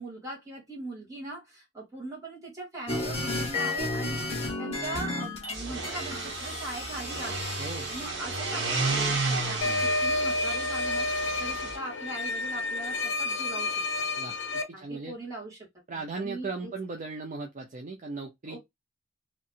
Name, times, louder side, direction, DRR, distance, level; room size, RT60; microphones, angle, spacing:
voice 1, 0.0-7.5 7.9-14.1 14.7-15.6 15.9-16.7 18.5-18.6, right 2 dB, 20° right, 1.7 m, -40 dB
sound 1, 2.9-5.6 5.8-8.1, left 2 dB, 30° left, 1.2 m, -33 dB
sound 2, 5.5-11.7, right 3 dB, 65° right, 1.4 m, -32 dB
voice 2, 7.6-7.9 14.2-14.4 14.8-15.1 15.9-18.6, right 3 dB, 40° right, 0.5 m, -37 dB
sound 3, 9.6-14.6, left 2 dB, 65° left, 0.7 m, -30 dB
3.1 x 2.8 x 2.4 m
head